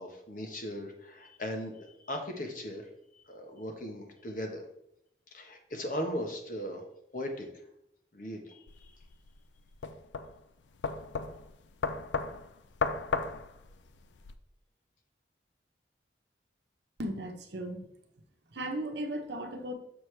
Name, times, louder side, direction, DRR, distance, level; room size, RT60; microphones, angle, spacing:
voice 1, 0.0-2.9 3.1-4.6 5.3-6.9 7.1-7.6 8.1-9.0, equal, 45° left, 4 dB, 1.1 m, -38 dB
sound 1, 8.7-14.3, left 4 dB, 85° left, 0.5 m, -35 dB
voice 2, 17.0-17.9 18.5-19.7, right 1 dB, 70° right, 4 dB, 0.9 m, -36 dB
6.7 x 6.2 x 3.3 m, 0.77 s
head